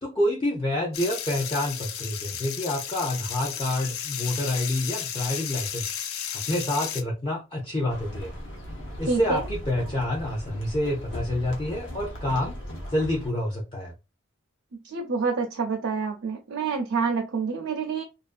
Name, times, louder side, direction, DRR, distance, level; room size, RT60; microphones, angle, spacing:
voice 1, 0.0-5.8 6.3-8.3 9.0-12.6 12.9-13.9, left 1 dB, 25° left, 0.5 m, -28 dB
sound 1, 0.9-7.0, left 9 dB, 85° left, 0.4 m, -33 dB
sound 2, 7.9-13.3, equal, 60° left, 0.7 m, -38 dB
voice 2, 9.1-9.4 14.7-18.0, right 5 dB, 75° right, 0.5 m, -27 dB
2.5 x 2.3 x 2.4 m
head